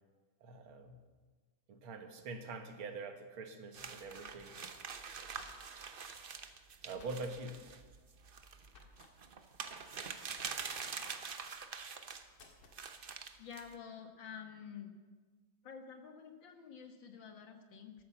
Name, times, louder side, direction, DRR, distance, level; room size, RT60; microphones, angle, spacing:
voice 1, 0.4-1.0 1.7-4.6 6.8-7.6, right 3 dB, 80° right, 6 dB, 2.2 m, -44 dB
sound 1, 3.7-12.2 12.7-13.7, right 5 dB, 55° right, 0.6 m, -45 dB
sound 2, 5.4-5.9 6.9-7.4 8.7-9.1 10.4-10.9 12.3-12.8, left 4 dB, 85° left, 2.6 m, -59 dB
voice 2, 13.4-14.9 15.6-18.0, left 7 dB, 65° left, 6 dB, 2.1 m, -49 dB
13.5 x 13.0 x 7.2 m, 1.4 s
omnidirectional pair, 2.2 m